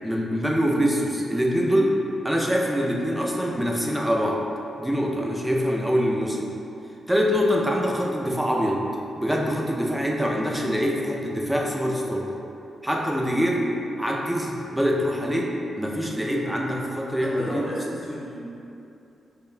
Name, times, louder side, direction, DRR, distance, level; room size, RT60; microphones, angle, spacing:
voice 1, 0.0-4.4 4.8-6.5 7.1-8.8 9.2-12.3 12.8-13.6 14.0-17.7, equal, 5° right, -2 dB, 0.4 m, -24 dB
voice 2, 17.4-18.4, equal, 30° left, -7 dB, 0.9 m, -33 dB
5.3 x 2.1 x 2.4 m, 2.8 s
wide cardioid pair, 135°, 0 cm